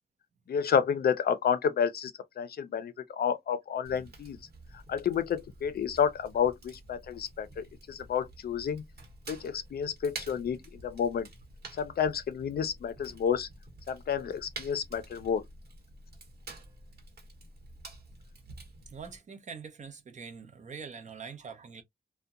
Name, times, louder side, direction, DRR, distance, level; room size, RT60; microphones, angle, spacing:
voice 1, 0.5-4.4 4.9-8.8 9.3-11.3 11.8-13.5 13.9-15.4, left 7 dB, 70° left, 0.4 m, -30 dB
Fire, 3.8-19.2, right 3 dB, 75° right, 1.0 m, -49 dB
voice 2, 18.9-21.8, right 5 dB, 45° right, 0.6 m, -44 dB
2.7 x 2.1 x 2.3 m
wide cardioid pair, 140°, 17 cm